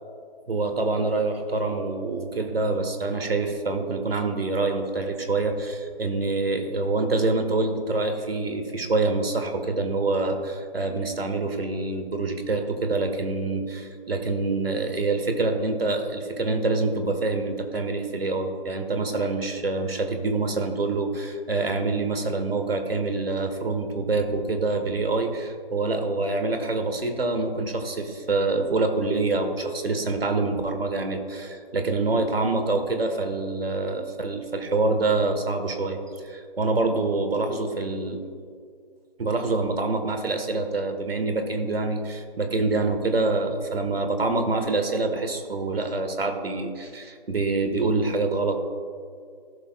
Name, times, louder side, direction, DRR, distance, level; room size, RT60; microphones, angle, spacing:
voice 1, 0.5-36.0 36.2-38.2 39.2-48.5, right 3 dB, 75° right, 5 dB, 1.5 m, -26 dB
15.5 x 6.8 x 2.4 m, 2.2 s
figure-of-eight pair, 155°, 30 cm